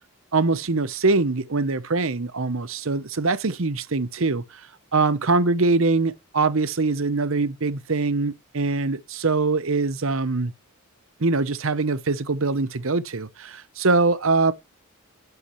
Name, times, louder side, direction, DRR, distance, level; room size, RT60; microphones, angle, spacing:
voice 1, 0.3-4.7 4.9-10.5 11.2-14.5, right 3 dB, 60° right, 0.9 m, -23 dB
11.0 x 8.5 x 3.1 m
head